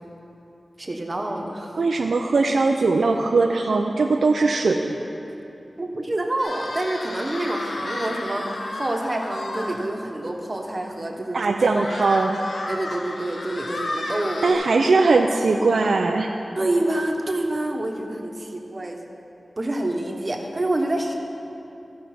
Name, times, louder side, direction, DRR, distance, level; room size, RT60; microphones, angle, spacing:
voice 1, 0.8-1.8 5.8-8.5 8.7-11.9 12.7-14.6 16.6-19.0 19.6-21.1, right 1 dB, 40° right, 2 dB, 1.1 m, -27 dB
voice 2, 1.8-5.0 11.3-12.4 14.4-16.4, right 3 dB, 85° right, 3 dB, 0.4 m, -20 dB
sound 1, 6.4-9.8 10.3-10.4 10.7-10.8 11.7-14.5, left 1 dB, 80° left, 1.0 m, -32 dB
15.0 x 5.2 x 5.8 m, 2.8 s
cardioid pair, 50°, 0 cm